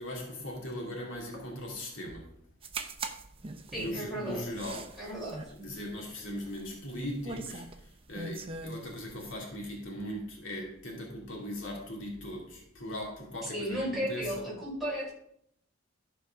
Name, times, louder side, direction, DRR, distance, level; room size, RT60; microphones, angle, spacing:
voice 1, 0.0-2.3 3.7-5.1 5.6-14.3, equal, 65° left, -2 dB, 2.6 m, -39 dB
sound 1, 2.6-9.3, right 3 dB, 25° right, 0.8 m, -42 dB
voice 2, 3.7-4.4 5.0-5.4 13.4-15.1, equal, ahead, -6 dB, 4.7 m, -34 dB
13.0 x 5.1 x 5.2 m, 0.71 s
head